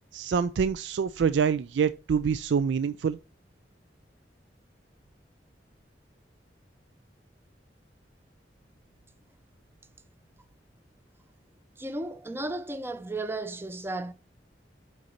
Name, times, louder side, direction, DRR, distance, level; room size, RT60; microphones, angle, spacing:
voice 1, 0.1-3.2, right 6 dB, 85° right, 0.3 m, -26 dB
voice 2, 11.8-14.1, right 2 dB, 15° right, 0.5 m, -34 dB
7.7 x 5.3 x 4.3 m
head